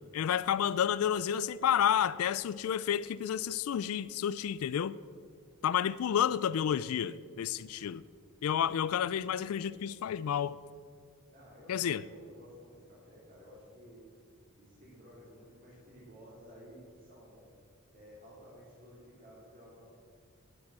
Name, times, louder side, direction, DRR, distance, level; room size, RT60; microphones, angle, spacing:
voice 1, 0.1-4.9 5.6-8.0 8.4-10.6 11.7-12.0, left 9 dB, 75° left, 17 dB, 0.3 m, -30 dB
voice 2, 11.3-14.1 14.6-17.5 17.9-19.9, equal, 45° right, -7 dB, 3.2 m, -54 dB
10.5 x 9.8 x 7.6 m, 2.1 s
head